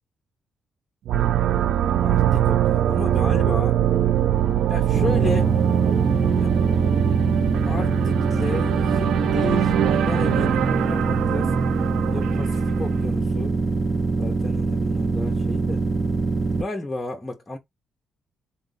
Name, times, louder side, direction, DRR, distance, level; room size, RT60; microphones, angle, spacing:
sound 1, 1.1-13.0, right 11 dB, 75° right, 0.3 m, -22 dB
voice 1, 2.0-3.8 4.7-5.6 6.4-6.6 7.7-11.5 12.1-13.6 14.2-15.8 16.6-17.6, left 2 dB, 15° left, 0.7 m, -32 dB
sound 2, 4.9-16.6, right 3 dB, 25° right, 0.6 m, -24 dB
4.0 x 2.5 x 3.9 m
cardioid pair, 130°, 0 cm